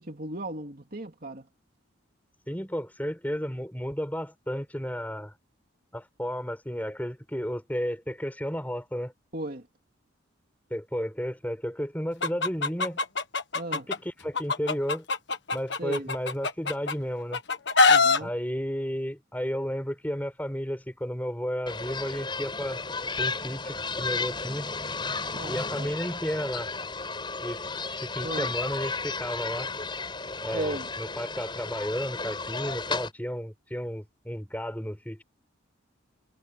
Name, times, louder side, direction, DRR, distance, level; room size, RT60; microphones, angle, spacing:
voice 1, 0.0-1.5 9.3-9.7 13.5-13.9 15.8-16.1 17.9-18.3 25.3-25.9 28.2-28.5 30.5-30.9, right 1 dB, 45° right, 2.8 m, -36 dB
voice 2, 2.5-5.3 5.9-9.1 10.7-13.0 13.7-15.1 15.5-17.4 18.2-22.8 23.2-24.7 25.5-26.7 27.4-27.6 28.0-29.7 30.4-35.2, equal, 10° left, 6.2 m, -33 dB
Chicken rooster, 12.2-14.0 14.3-16.9 17.3-18.2, left 4 dB, 60° left, 1.5 m, -23 dB
sound 1, 21.7-33.1, left 4 dB, 25° left, 7.7 m, -33 dB
head